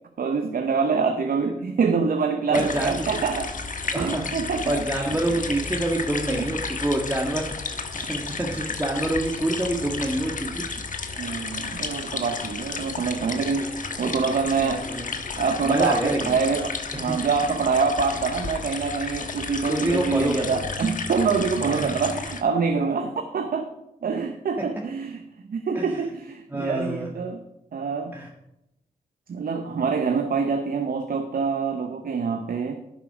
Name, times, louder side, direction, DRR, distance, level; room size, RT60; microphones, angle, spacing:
voice 1, 0.2-3.5 4.0-4.9 5.2-5.5 6.3-6.5 11.2-13.7 14.0-14.9 15.4-23.7 24.0-25.2 25.5-27.4 27.7-28.2 29.3-32.8, right 5 dB, 65° right, 7 dB, 0.8 m, -25 dB
sound 1, 2.5-22.4, left 4 dB, 55° left, 1.2 m, -33 dB
voice 2, 2.5-2.9 3.9-4.3 4.7-7.5 7.9-10.6 14.6-15.1 15.6-16.3 16.9-17.1 19.7-20.7 25.7-26.0 26.5-27.1 28.1-28.3, right 1 dB, 15° right, -1 dB, 1.6 m, -26 dB
11.5 x 5.6 x 4.9 m, 0.87 s
supercardioid pair, 40°, 16 cm